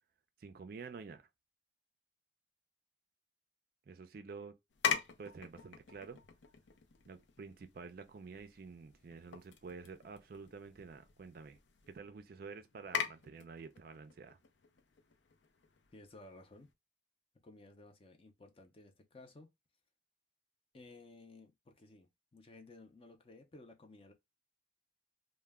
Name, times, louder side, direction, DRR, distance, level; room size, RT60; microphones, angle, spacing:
voice 1, 0.4-1.3 3.9-4.6 5.2-6.2 7.1-11.6 11.9-14.4, right 4 dB, 55° right, 0.4 m, -49 dB
sound 1, 4.7-16.7, left 7 dB, 90° left, 0.5 m, -44 dB
voice 2, 15.9-16.7 17.4-19.5 20.7-24.1, left 2 dB, 30° left, 0.5 m, -56 dB
2.1 x 2.1 x 3.3 m
head